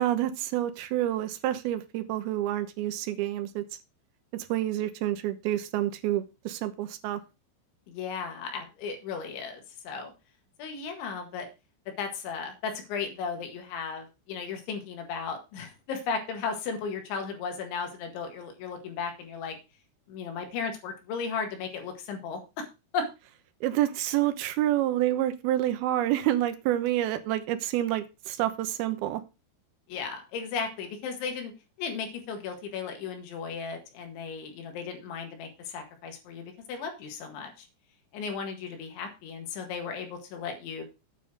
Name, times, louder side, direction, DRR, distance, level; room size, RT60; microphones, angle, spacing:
voice 1, 0.0-3.6 4.3-7.2 23.6-29.2, right 13 dB, 75° right, 9 dB, 2.4 m, -28 dB
voice 2, 7.9-10.1 10.6-11.5 12.0-19.6 20.1-22.7 22.9-23.1 29.9-31.5 31.8-37.7 38.1-40.8, left 5 dB, 75° left, 4 dB, 4.1 m, -35 dB
9.4 x 5.6 x 6.1 m, 0.28 s
omnidirectional pair, 5.6 m